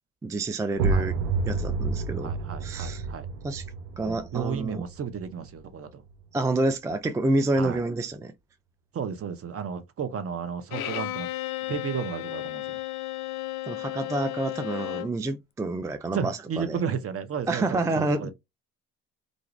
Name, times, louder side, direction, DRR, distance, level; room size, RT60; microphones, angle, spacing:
voice 1, 0.2-1.2 1.5-2.3 2.6-3.1 3.4-3.6 4.0-4.8 6.3-8.3 13.7-16.8 17.5-18.3, right 2 dB, 10° right, 0.3 m, -28 dB
sound 1, 0.7-6.3, right 4 dB, 85° right, 0.6 m, -30 dB
voice 2, 2.2-3.3 4.0-6.0 7.6-7.8 8.9-11.3 11.7-12.8 16.1-18.3, right 7 dB, 40° right, 0.7 m, -33 dB
Bowed string instrument, 10.7-15.2, left 16 dB, 60° left, 0.5 m, -34 dB
2.5 x 2.4 x 3.0 m
supercardioid pair, 70°, 36 cm